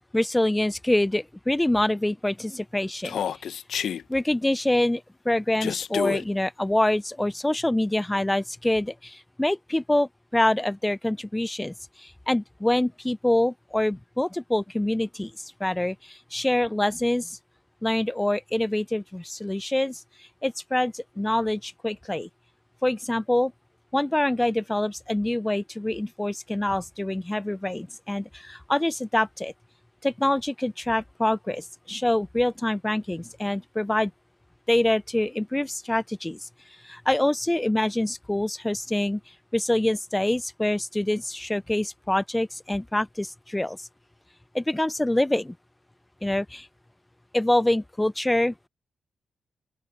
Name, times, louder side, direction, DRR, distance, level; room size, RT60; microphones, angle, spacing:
voice 1, 0.1-3.2 4.1-17.4 17.8-22.3 22.8-23.5 23.9-29.5 30.0-34.1 34.7-36.5 36.8-39.2 39.5-43.9 44.5-45.5 46.2-46.7 47.3-48.5, left 1 dB, 10° left, 0.4 m, -25 dB
Human voice, 3.0-4.0 5.6-6.2, left 8 dB, 80° left, 0.8 m, -28 dB
open air
cardioid pair, 90°, 0 cm